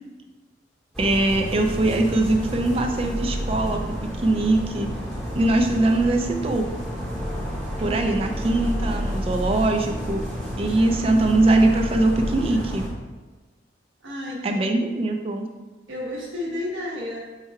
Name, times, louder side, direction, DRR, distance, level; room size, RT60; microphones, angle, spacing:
sound 1, 0.9-12.9, equal, 5° left, 0.8 m, -30 dB
voice 1, 1.0-3.8 4.2-4.9 5.3-6.6 7.8-10.2 10.6-12.8 14.4-15.5, right 2 dB, 30° right, 4 dB, 0.3 m, -21 dB
voice 2, 14.0-14.6 15.9-17.2, left 1 dB, 90° right, -3 dB, 1.1 m, -31 dB
4.6 x 2.2 x 4.6 m, 1.2 s
head